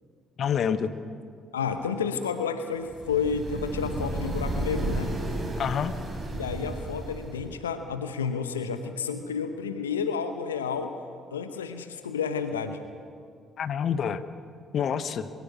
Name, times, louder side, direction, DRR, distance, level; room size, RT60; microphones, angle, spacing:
voice 1, 0.4-0.9 5.6-5.9 13.6-14.2 14.7-15.3, left 7 dB, 55° left, 13 dB, 0.9 m, -27 dB
voice 2, 1.5-5.1 6.3-10.9 11.3-12.8, left 6 dB, 85° left, 9 dB, 0.9 m, -30 dB
sound 1, 2.9-7.6, right 2 dB, 30° right, 6.2 m, -33 dB
22.0 x 16.5 x 8.5 m, 2.3 s
figure-of-eight pair, 45°, 0 cm